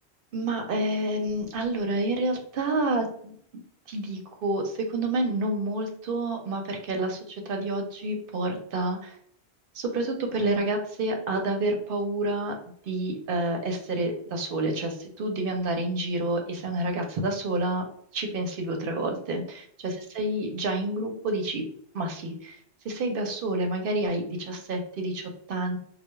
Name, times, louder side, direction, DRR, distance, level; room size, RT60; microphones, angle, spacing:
voice 1, 0.3-3.4 3.9-9.1 9.7-12.5 12.9-17.8 18.1-21.7 21.9-22.6 22.8-25.8, right 2 dB, 65° right, 3 dB, 0.7 m, -29 dB
2.2 x 2.1 x 2.9 m, 0.63 s
omnidirectional pair, 1.1 m